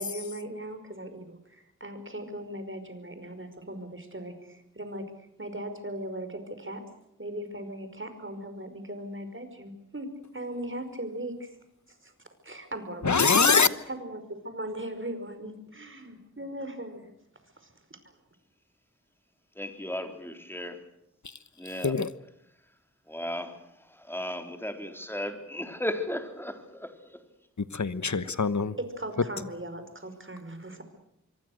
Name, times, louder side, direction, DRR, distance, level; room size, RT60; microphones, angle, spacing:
voice 1, 0.0-6.9 7.2-11.5 11.9-12.1 12.4-17.1 17.6-18.0 28.9-30.8, right 1 dB, 40° right, 5.2 m, -39 dB
voice 2, 13.0-13.7 21.2-21.4 21.8-22.1 27.6-28.8, left 5 dB, 65° left, 1.3 m, -23 dB
voice 3, 19.6-20.8 21.6-21.9 23.1-27.2, left 1 dB, 5° left, 3.9 m, -35 dB
26.0 x 23.5 x 6.5 m
wide cardioid pair, 50°, 30 cm